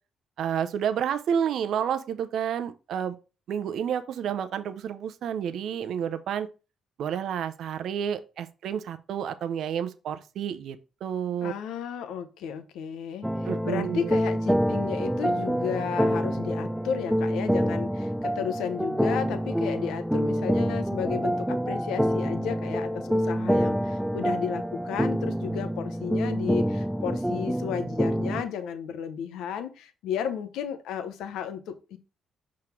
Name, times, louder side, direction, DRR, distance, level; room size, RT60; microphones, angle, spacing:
voice 1, 0.4-3.2 3.5-6.5 7.0-10.8 11.0-11.5 13.4-14.1, right 8 dB, 70° right, 0.5 m, -30 dB
voice 2, 11.4-32.0, left 8 dB, 85° left, 0.7 m, -33 dB
sound 1, 13.2-28.4, equal, ahead, 0.4 m, -27 dB
5.8 x 3.7 x 4.4 m
cardioid pair, 90°, 0 cm